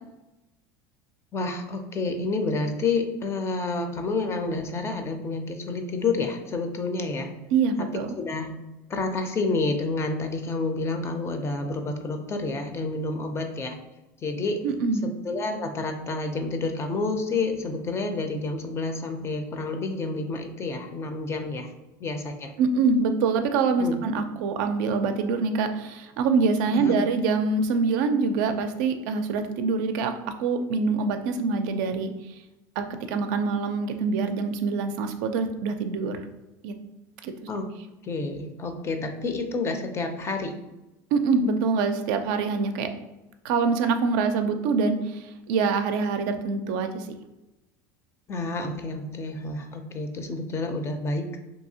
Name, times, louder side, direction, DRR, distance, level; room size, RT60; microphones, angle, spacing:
voice 1, 1.3-7.3 8.2-8.5 8.9-13.8 14.2-14.6 15.2-21.7 22.0-22.5 23.8-24.0 26.7-27.0 37.5-37.7 38.0-40.5 48.3-51.4, left 3 dB, 25° left, 6 dB, 0.4 m, -29 dB
voice 2, 7.5-8.1 14.6-15.0 22.6-30.1 30.4-32.1 32.8-36.2 36.6-36.8 37.2-37.3 41.1-42.9 43.4-47.1, right 4 dB, 75° right, 7 dB, 0.4 m, -25 dB
2.7 x 2.7 x 2.7 m, 0.97 s
supercardioid pair, 115°, 10 cm